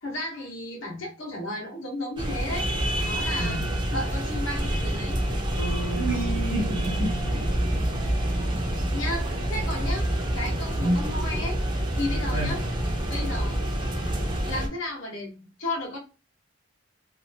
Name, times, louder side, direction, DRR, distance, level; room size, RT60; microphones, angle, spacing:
voice 1, 0.0-2.7 3.0-3.6 3.9-5.2 8.9-10.1 10.3-11.6 11.9-12.6 13.1-13.6 14.4-16.0, left 2 dB, 75° left, 1.0 m, -33 dB
sound 1, 2.2-14.7, right 1 dB, 20° right, 0.5 m, -27 dB
Bass guitar, 5.6-9.7, right 4 dB, 60° left, 0.7 m, -38 dB
voice 2, 5.9-7.4 8.5-8.7 10.8-11.0 12.3-12.6, right 1 dB, 70° right, 1.0 m, -29 dB
2.7 x 2.4 x 2.6 m
head